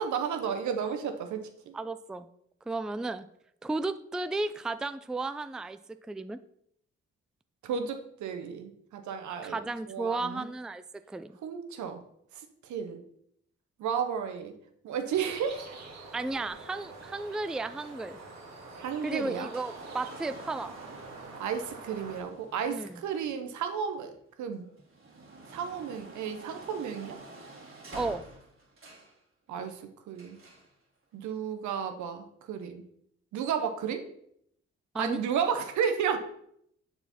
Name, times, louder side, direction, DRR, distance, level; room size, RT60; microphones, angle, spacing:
voice 1, 0.0-1.7 7.6-9.6 9.9-10.5 11.4-12.0 12.7-13.0 13.8-14.5 14.8-15.7 18.8-19.5 21.4-24.1 24.4-24.6 25.5-27.2 29.5-29.8 30.1-30.4 31.1-32.8 33.3-34.0 34.9-36.2, right 7 dB, 75° right, 6 dB, 0.8 m, -32 dB
voice 2, 1.7-2.3 2.7-3.3 3.6-5.8 6.1-6.4 9.4-11.3 16.1-18.2 19.0-20.8 22.7-23.0 27.9-28.2 34.9-35.2, right 3 dB, ahead, 12 dB, 0.3 m, -34 dB
sound 1, 15.1-22.2, right 3 dB, 60° right, 1.5 m, -46 dB
sound 2, 16.9-24.1 24.6-29.2 30.2-30.7 31.6-31.7, right 2 dB, 45° right, 2.0 m, -50 dB
6.9 x 4.2 x 4.2 m, 0.71 s
hypercardioid pair, 40°, 29 cm